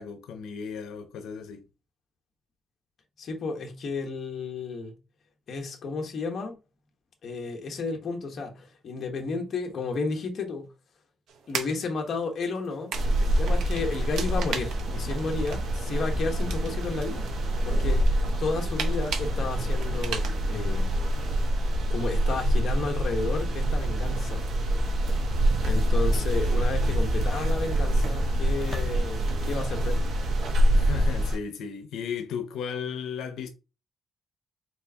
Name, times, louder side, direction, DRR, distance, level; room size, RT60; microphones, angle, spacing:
voice 1, 0.0-1.6 30.7-33.5, left 7 dB, 90° left, 0.6 m, -35 dB
voice 2, 3.2-5.0 5.5-6.6 7.2-10.7 11.5-12.9 13.2-17.3 17.6-20.9 21.9-24.4 25.6-30.0, left 3 dB, 45° left, 1.1 m, -32 dB
sound 1, 11.3-20.3, right 6 dB, 85° right, 0.8 m, -39 dB
sound 2, 12.9-31.4, right 1 dB, 65° right, 1.3 m, -26 dB
sound 3, 28.6-29.5, left 3 dB, 20° left, 0.5 m, -39 dB
4.6 x 4.2 x 2.8 m
cardioid pair, 170°, 0 cm